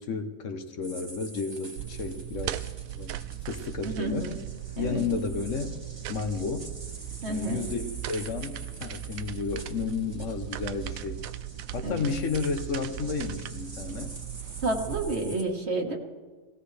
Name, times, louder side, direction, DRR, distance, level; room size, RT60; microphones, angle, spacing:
voice 1, 0.0-2.6 3.0-3.2 3.5-4.3 4.8-5.8 6.1-6.7 7.3-11.2 11.7-14.1 15.2-15.3, left 5 dB, 65° left, 7 dB, 1.3 m, -32 dB
sound 1, 0.8-15.4, right 1 dB, 20° right, 1.3 m, -47 dB
sound 2, 1.8-15.1, right 13 dB, 80° right, 1.0 m, -38 dB
voice 2, 3.8-4.4 4.8-5.0 7.2-7.7 11.8-12.1 14.6-16.0, right 2 dB, 50° right, 1 dB, 1.8 m, -30 dB
18.0 x 16.5 x 3.3 m, 1.3 s
omnidirectional pair, 1.4 m